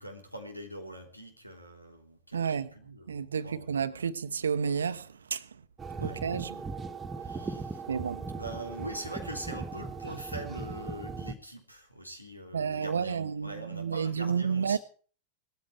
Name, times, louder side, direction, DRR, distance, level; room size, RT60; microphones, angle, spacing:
voice 1, 0.0-4.0 6.0-6.2 7.2-7.8 8.3-14.8, right 1 dB, 90° left, 3.4 m, -43 dB
voice 2, 2.3-2.7 3.1-5.4 6.0-6.6 7.9-8.2 12.5-14.8, right 6 dB, 70° right, 1.0 m, -31 dB
sound 1, 5.8-11.3, right 4 dB, 15° right, 1.8 m, -38 dB
18.0 x 14.0 x 4.8 m
figure-of-eight pair, 90°, 0 cm